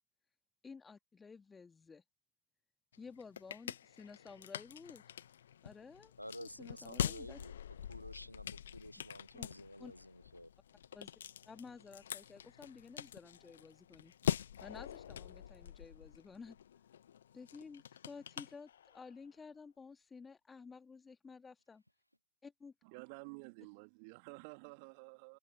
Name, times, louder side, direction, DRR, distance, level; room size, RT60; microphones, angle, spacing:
voice 1, 0.6-2.0 3.0-5.0 5.6-6.1 6.4-7.4 9.3-9.5 9.8-9.9 10.9-11.1 11.5-14.1 14.6-16.6 17.3-21.8 22.4-22.7, left 5 dB, 15° left, 2.3 m, -53 dB
sound 1, 2.9-19.2, left 9 dB, 65° left, 0.9 m, -44 dB
voice 2, 6.2-7.5 7.9-10.5, equal, 90° left, 0.4 m, -51 dB
voice 3, 22.8-25.4, right 33 dB, 45° right, 2.8 m, -51 dB
open air
figure-of-eight pair, 90°, 0 cm